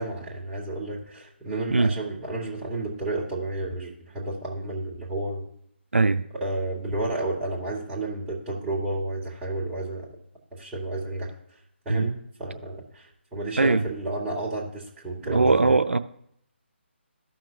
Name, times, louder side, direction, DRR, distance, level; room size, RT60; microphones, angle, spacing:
voice 1, 0.0-5.5 6.4-10.1 10.5-11.3 11.8-15.8, right 2 dB, 10° right, 1.7 m, -31 dB
voice 2, 5.9-6.2 11.9-12.1 13.6-13.9 15.2-16.0, right 3 dB, 85° right, 0.4 m, -21 dB
14.0 x 5.8 x 2.7 m
figure-of-eight pair, 150°, 6 cm